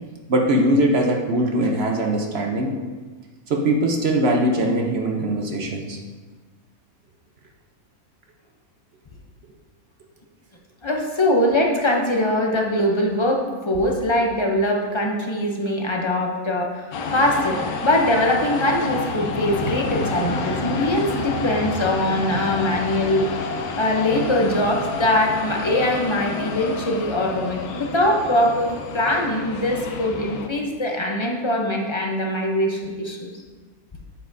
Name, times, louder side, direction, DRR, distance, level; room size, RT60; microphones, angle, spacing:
voice 1, 0.3-2.7 3.5-6.0, right 1 dB, 50° right, 1 dB, 0.9 m, -21 dB
voice 2, 10.8-16.8 17.1-23.4 23.8-33.3, left 1 dB, 30° left, 0 dB, 0.5 m, -22 dB
sound 1, 16.9-30.5, left 4 dB, 80° left, 1.2 m, -29 dB
8.5 x 7.2 x 2.7 m, 1.4 s
omnidirectional pair, 1.5 m